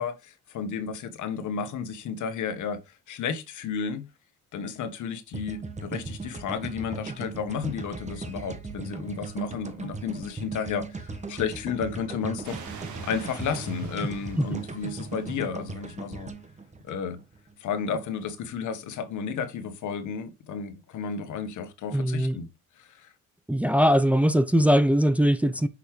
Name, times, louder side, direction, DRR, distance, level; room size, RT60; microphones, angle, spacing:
voice 1, 0.0-2.8 3.1-4.0 4.5-12.6 13.0-16.3 16.8-17.2 17.6-22.5 22.8-23.1, left 6 dB, 75° left, 1.3 m, -32 dB
sound 1, 5.3-17.5, right 3 dB, 25° right, 1.3 m, -38 dB
sound 2, 12.4-15.8, right 6 dB, 80° right, 1.9 m, -45 dB
voice 2, 21.9-22.4 23.5-25.7, equal, 5° right, 0.6 m, -21 dB
6.1 x 5.5 x 3.1 m
cardioid pair, 90°, 30 cm